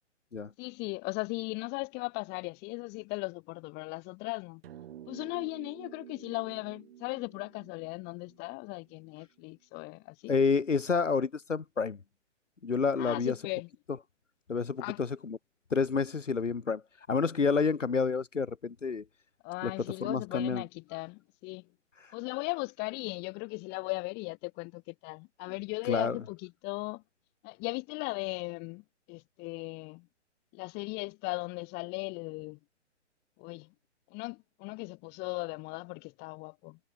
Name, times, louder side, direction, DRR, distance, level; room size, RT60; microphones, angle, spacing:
voice 1, 0.6-4.6 5.1-10.3 13.0-13.7 14.8-15.0 19.4-21.7 22.1-27.0 27.4-30.1 30.5-32.6 33.4-33.7 34.1-36.8, left 28 dB, 25° left, 5.0 m, -37 dB
sound 1, 4.6-9.2, right 11 dB, 50° right, 7.7 m, -51 dB
voice 2, 10.3-12.0 12.6-13.3 14.5-15.4 15.7-16.8 17.1-19.0 19.6-19.7 20.0-20.6 25.9-26.2, left 5 dB, 90° left, 2.0 m, -29 dB
hypercardioid pair, 135°, 36 cm